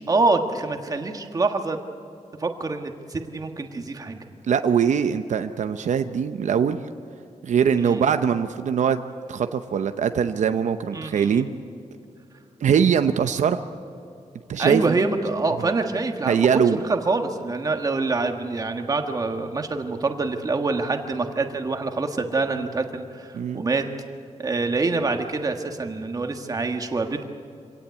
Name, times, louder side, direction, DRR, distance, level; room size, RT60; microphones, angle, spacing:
voice 1, 0.0-1.8 2.4-4.2 7.8-8.0 10.9-11.5 14.6-16.6 16.9-23.9 24.4-27.2, right 3 dB, 30° right, 5 dB, 1.5 m, -25 dB
voice 2, 4.5-6.8 7.4-9.0 9.3-11.5 12.6-13.6 14.5-15.0 15.6-15.7 16.3-16.8 23.3-23.6, right 7 dB, 75° right, 8 dB, 0.8 m, -22 dB
25.5 x 17.5 x 8.4 m, 2.7 s
wide cardioid pair, 175°, 12 cm